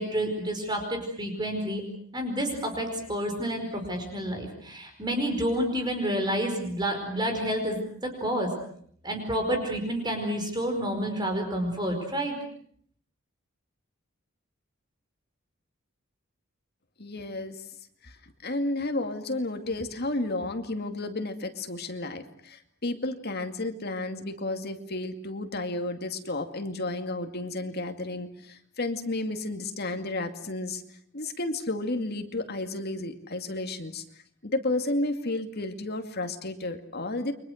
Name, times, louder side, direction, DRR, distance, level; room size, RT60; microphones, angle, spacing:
voice 1, 0.0-1.8 2.1-8.5 9.0-12.4, equal, 20° right, 4 dB, 4.9 m, -29 dB
voice 2, 17.0-17.7 18.0-30.8 31.1-34.0 34.4-37.3, left 2 dB, 50° left, 6 dB, 2.3 m, -32 dB
29.5 x 24.5 x 6.5 m, 0.63 s
head